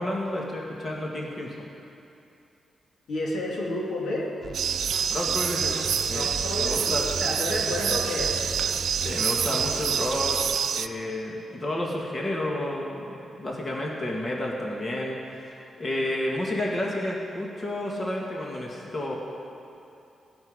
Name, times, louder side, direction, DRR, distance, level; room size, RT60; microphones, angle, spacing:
voice 1, 0.0-1.7 4.7-5.8 6.0-6.3 6.5-7.0 9.0-10.4 10.7-19.2, left 1 dB, 35° left, -2 dB, 2.1 m, -31 dB
voice 2, 3.1-4.3 6.1-8.4, left 1 dB, 85° left, -3 dB, 2.9 m, -30 dB
sound 1, 4.4-10.6, right 4 dB, 45° right, 0.9 m, -37 dB
sound 2, 4.5-10.9, right 7 dB, 80° right, 0.4 m, -27 dB
17.0 x 7.2 x 9.8 m, 2.8 s
cardioid pair, 110°, 0 cm